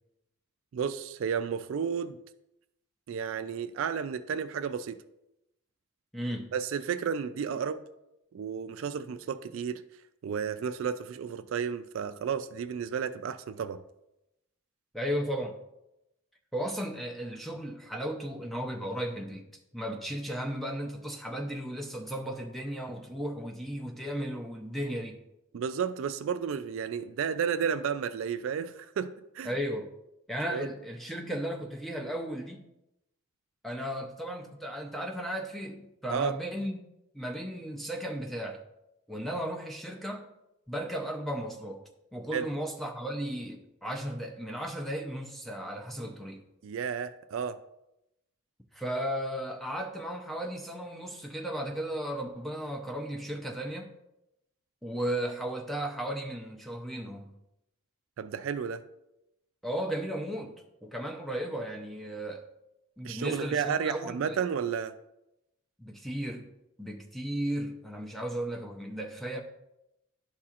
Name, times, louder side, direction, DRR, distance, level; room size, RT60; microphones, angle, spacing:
voice 1, 0.7-2.2 3.1-5.0 6.5-7.8 8.3-9.8 10.2-13.8 25.5-29.5 30.5-30.7 36.1-36.4 42.3-42.5 46.6-47.6 58.2-58.8 63.0-64.9, right 7 dB, 65° right, 12 dB, 0.3 m, -32 dB
voice 2, 6.1-6.5 14.9-15.6 16.5-19.5 19.7-25.2 29.4-29.9 30.3-32.6 33.6-36.8 37.1-38.6 39.1-40.3 40.7-41.8 42.1-46.4 48.7-53.9 54.8-57.3 59.6-62.4 63.0-64.4 65.8-66.5 66.8-69.4, equal, ahead, 2 dB, 0.5 m, -35 dB
11.5 x 4.2 x 2.4 m, 0.89 s
head